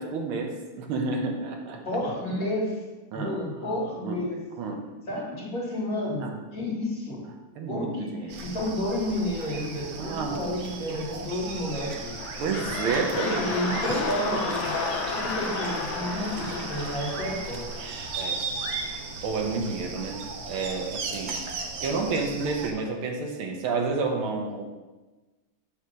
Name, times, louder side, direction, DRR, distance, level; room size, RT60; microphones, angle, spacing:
voice 1, 0.0-1.8 3.1-3.4 4.0-4.2 4.6-4.8 6.2-6.3 7.6-8.3 9.9-10.4 12.4-13.4 18.1-18.4 18.8-20.2 20.4-21.4 21.8-24.6, right 4 dB, 85° right, 2 dB, 1.7 m, -30 dB
voice 2, 1.9-2.8 3.1-4.4 5.1-7.3 7.7-12.2 13.1-17.8, left 1 dB, 45° left, -5 dB, 2.1 m, -31 dB
sound 1, 8.3-22.7, right 4 dB, 65° right, 1.0 m, -36 dB
sound 2, 11.8-18.3 18.8-18.9, left 4 dB, 75° left, 1.6 m, -33 dB
8.0 x 2.9 x 6.2 m, 1.2 s
omnidirectional pair, 2.3 m